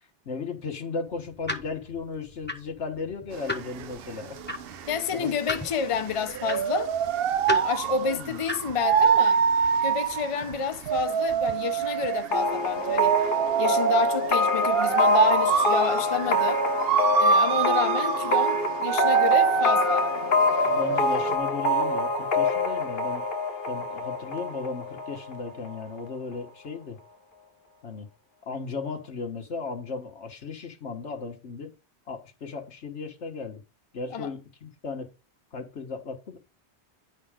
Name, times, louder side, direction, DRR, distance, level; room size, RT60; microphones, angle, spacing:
voice 1, 0.3-4.4 5.1-5.3 8.0-8.4 20.7-23.3 23.7-27.0 27.8-28.1 28.4-31.7 32.1-33.6 33.9-35.1 35.5-36.4, left 4 dB, 85° left, 1.7 m, -35 dB
sound 1, 1.1-8.8, left 2 dB, 10° left, 1.0 m, -37 dB
sound 2, 3.3-21.4, right 7 dB, 65° right, 0.8 m, -25 dB
voice 2, 4.9-6.9 7.5-9.4 9.8-13.2 13.6-16.6 17.2-20.1 34.1-34.3, left 6 dB, 35° left, 0.7 m, -29 dB
sound 3, 12.3-25.8, left 2 dB, 50° left, 1.1 m, -25 dB
10.0 x 4.3 x 5.0 m
omnidirectional pair, 1.1 m